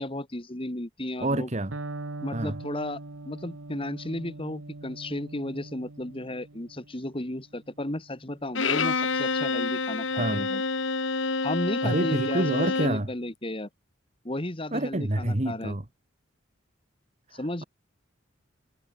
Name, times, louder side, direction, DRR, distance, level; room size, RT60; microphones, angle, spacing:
voice 1, 0.0-1.5 2.2-3.0 3.3-10.6 11.4-13.7 14.2-15.7 17.3-17.6, left 1 dB, 25° left, 2.0 m, -34 dB
voice 2, 1.2-1.8 2.3-2.6 10.1-10.5 11.8-13.1 14.7-15.8 17.3-17.6, right 1 dB, 35° right, 1.5 m, -28 dB
Electric guitar, 1.7-9.5, right 2 dB, 85° right, 1.7 m, -42 dB
Bowed string instrument, 8.5-13.0, left 4 dB, 75° left, 2.3 m, -28 dB
head